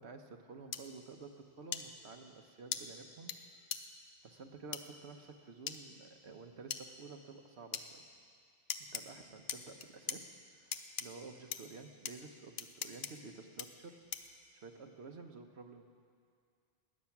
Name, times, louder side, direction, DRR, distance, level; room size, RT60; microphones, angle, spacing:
voice 1, 0.0-3.3 4.2-8.0 8.8-14.0 14.5-15.8, right 4 dB, 75° right, 6 dB, 1.2 m, -51 dB
sound 1, 0.7-0.8 1.7-1.8 2.7-2.8 3.3-3.4 3.7-3.8 4.7-4.8 5.7-5.8 6.7-6.8 7.7-7.9 8.7-9.0 9.5-10.2 10.7-11.1 11.5-11.6 12.1-12.2 12.6-13.1 13.6-13.7 14.1-14.3, left 8 dB, 65° left, 0.9 m, -38 dB
19.5 x 9.4 x 5.9 m, 2.2 s
omnidirectional pair, 1.1 m